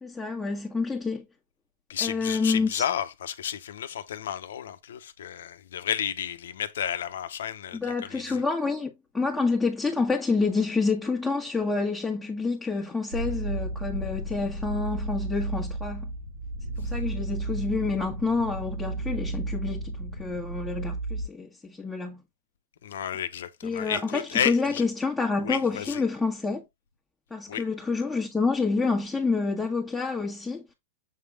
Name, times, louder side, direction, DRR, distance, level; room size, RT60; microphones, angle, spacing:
voice 1, 0.0-1.2 2.0-2.8 7.7-16.1 16.8-22.2 23.6-26.6 27.3-30.6, left 4 dB, 10° left, 1.5 m, -28 dB
voice 2, 1.9-8.4 22.8-24.8 25.4-26.0 27.5-27.6, left 9 dB, 80° left, 0.9 m, -32 dB
sound 1, 13.1-21.2, right 2 dB, 90° right, 2.1 m, -33 dB
7.5 x 3.5 x 3.6 m
hypercardioid pair, 115°, 0 cm